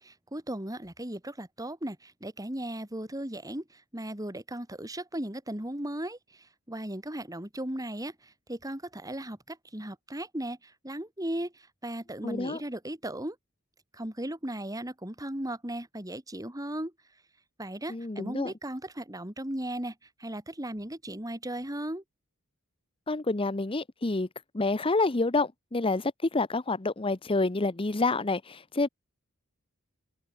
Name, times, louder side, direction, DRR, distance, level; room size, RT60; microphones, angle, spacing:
voice 1, 0.0-13.4 13.9-16.9 17.6-22.0, right 1 dB, 15° right, 3.7 m, -37 dB
voice 2, 12.2-12.6 17.9-18.5 23.1-24.3 24.5-28.9, left 3 dB, 25° left, 0.8 m, -28 dB
head